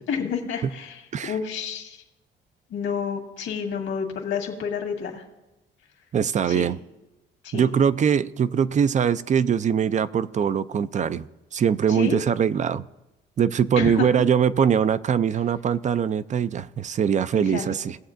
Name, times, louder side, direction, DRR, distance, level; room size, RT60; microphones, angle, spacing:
voice 1, 0.0-2.0 2.7-5.2 6.5-6.7 7.4-7.7 11.9-12.2 13.8-14.1 17.4-17.8, left 6 dB, 80° left, 2 dB, 1.8 m, -30 dB
voice 2, 6.1-6.8 7.5-11.3 11.5-12.8 13.4-18.0, right 8 dB, 40° right, 16 dB, 0.4 m, -22 dB
18.5 x 7.5 x 2.6 m, 0.98 s
cardioid pair, 90°, 20 cm